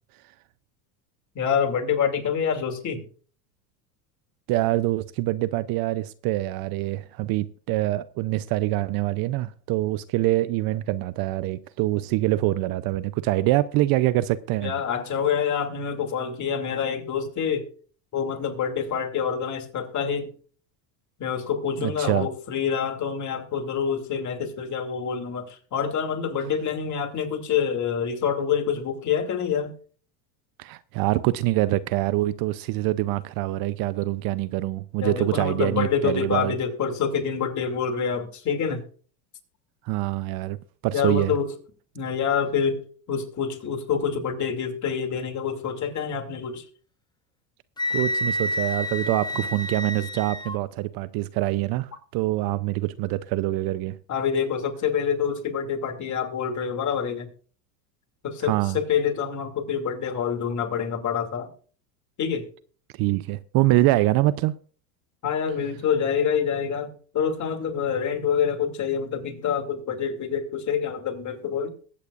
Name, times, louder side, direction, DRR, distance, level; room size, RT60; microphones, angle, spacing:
voice 1, 1.3-3.0 14.6-17.6 18.1-20.3 21.2-29.7 35.0-38.8 40.9-41.5 41.9-42.8 43.1-46.6 54.1-57.3 58.2-61.5 62.2-62.5 65.2-71.7, left 7 dB, 35° left, 2.6 m, -26 dB
voice 2, 4.5-14.7 21.8-22.3 30.6-36.5 39.8-40.6 40.8-41.4 47.9-54.0 58.4-58.8 63.0-64.5, right 16 dB, 45° right, 0.6 m, -25 dB
Wind instrument woodwind instrument, 47.8-50.6, left 1 dB, 10° left, 1.0 m, -29 dB
21.5 x 8.3 x 2.5 m
supercardioid pair, 105°, 49 cm